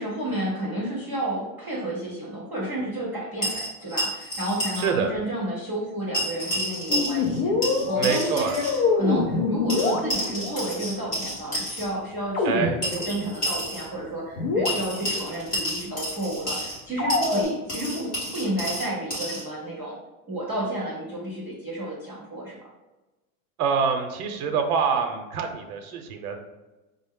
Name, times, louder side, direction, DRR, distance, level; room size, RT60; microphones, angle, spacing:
voice 1, 0.0-7.5 7.9-20.0 20.3-22.6, right 1 dB, 5° right, -13 dB, 0.3 m, -31 dB
sound 1, 3.4-4.9 5.1-5.2 6.1-7.4 7.6-8.8 9.7-11.8 12.8-13.9 14.7-16.8 17.1-19.4, equal, 20° left, 1.4 m, -30 dB
voice 2, 4.8-5.1 8.0-8.6 12.4-12.8 23.6-26.4, right 6 dB, 80° right, 5 dB, 0.7 m, -25 dB
sound 2, 6.9-10.6 12.3-13.3 13.6-13.7 14.1-14.2 14.4-15.3 17.0-17.4, left 3 dB, 40° left, 0.6 m, -25 dB
5.1 x 2.0 x 3.6 m, 1.1 s
supercardioid pair, 170°, 44 cm